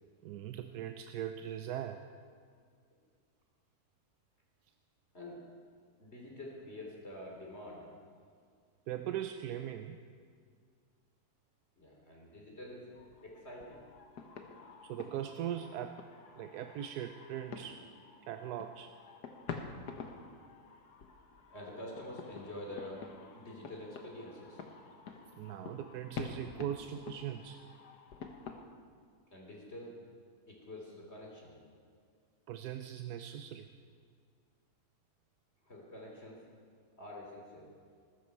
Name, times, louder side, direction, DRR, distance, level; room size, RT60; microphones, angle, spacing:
voice 1, 0.2-2.0 8.9-10.0 14.8-16.0 16.4-17.9 18.3-18.9 25.4-27.6 32.5-33.7, right 10 dB, 80° right, 7 dB, 1.2 m, -40 dB
voice 2, 6.0-7.9 11.8-12.9 13.2-13.8 21.5-23.1 23.3-24.6 29.3-30.0 30.5-31.6 35.6-36.4 37.0-37.7, left 1 dB, 40° left, -2 dB, 3.1 m, -47 dB
sound 1, 12.9-28.6, left 5 dB, 90° left, 1.7 m, -48 dB
20.5 x 13.0 x 4.6 m, 2.1 s
omnidirectional pair, 1.7 m